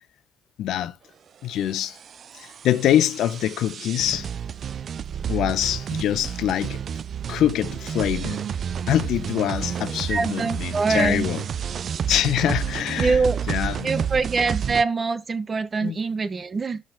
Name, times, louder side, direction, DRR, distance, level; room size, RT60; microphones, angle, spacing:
voice 1, 0.6-1.0 1.4-2.0 2.4-4.3 5.3-6.8 7.3-8.4 8.9-11.4 12.1-13.2 13.5-14.1 15.8-16.0, left 11 dB, 80° left, 0.6 m, -24 dB
sound 1, 1.6-14.8, right 8 dB, 55° right, 0.4 m, -30 dB
voice 2, 10.1-11.3 13.0-13.4 13.8-16.8, right 4 dB, 35° right, 0.9 m, -24 dB
6.2 x 3.8 x 5.1 m
cardioid pair, 90°, 0 cm